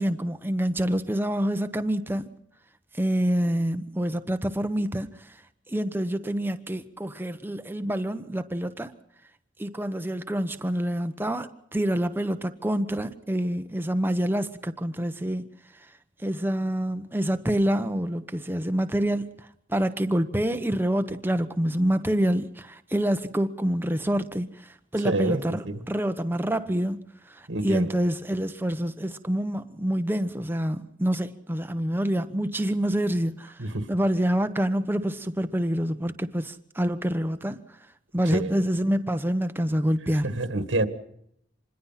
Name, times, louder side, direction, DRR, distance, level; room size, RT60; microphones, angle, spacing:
voice 1, 0.0-2.3 3.0-5.1 5.7-8.9 9.6-15.5 16.2-19.3 19.7-24.5 24.9-27.0 27.3-33.6 33.9-37.6 38.1-40.3, equal, 10° right, 1.1 m, -27 dB
voice 2, 25.0-25.8 27.5-27.9 33.6-33.9 38.3-38.5 40.2-40.9, right 2 dB, 80° right, 2.0 m, -27 dB
26.5 x 21.5 x 5.8 m
head